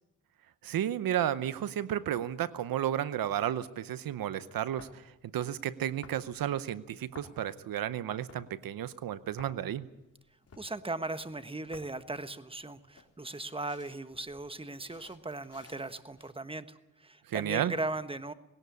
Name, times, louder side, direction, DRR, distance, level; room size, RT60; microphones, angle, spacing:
voice 1, 0.6-9.9 17.3-17.7, right 11 dB, 85° right, 15 dB, 0.8 m, -33 dB
sound 1, 4.8-16.3, left 4 dB, 45° left, 4.0 m, -57 dB
voice 2, 10.6-18.3, right 2 dB, 15° right, 11 dB, 1.3 m, -38 dB
20.0 x 17.5 x 8.3 m, 0.96 s
cardioid pair, 70°, 34 cm